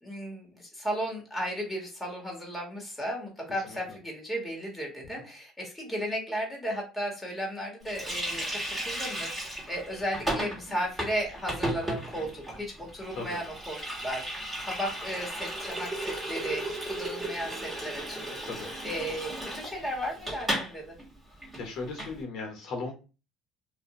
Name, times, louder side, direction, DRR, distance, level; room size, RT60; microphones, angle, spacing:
voice 1, 0.0-20.9, equal, 5° left, -1 dB, 1.3 m, -35 dB
Water tap faucet, 7.9-20.7 21.0-21.1 21.4-22.1, right 1 dB, 10° right, 1.4 m, -35 dB
voice 2, 21.5-22.9, left 3 dB, 60° left, 2 dB, 0.8 m, -36 dB
2.5 x 2.2 x 2.8 m, 0.32 s
supercardioid pair, 85°, 0 cm